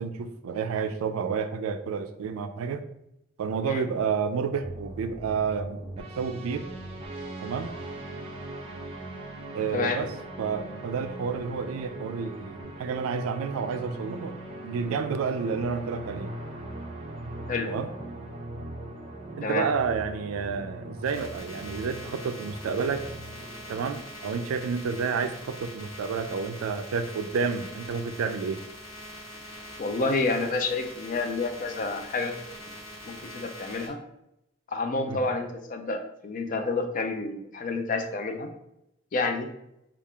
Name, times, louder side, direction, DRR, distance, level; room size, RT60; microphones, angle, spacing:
voice 1, 0.0-2.8 3.4-6.7 7.4-7.7 9.5-10.1 10.4-14.3 14.6-16.3 17.7-17.9 19.4-23.1 23.7-28.6 35.1-35.2, right 5 dB, 85° right, 9 dB, 0.3 m, -30 dB
sound 1, 4.6-24.0, right 1 dB, 25° right, 0.5 m, -40 dB
sound 2, 21.0-33.9, equal, 70° left, 1.0 m, -43 dB
voice 2, 29.8-32.4 33.1-34.0 34.7-38.5 39.1-39.5, left 3 dB, 40° left, 6 dB, 0.4 m, -29 dB
3.4 x 2.4 x 3.6 m, 0.82 s
head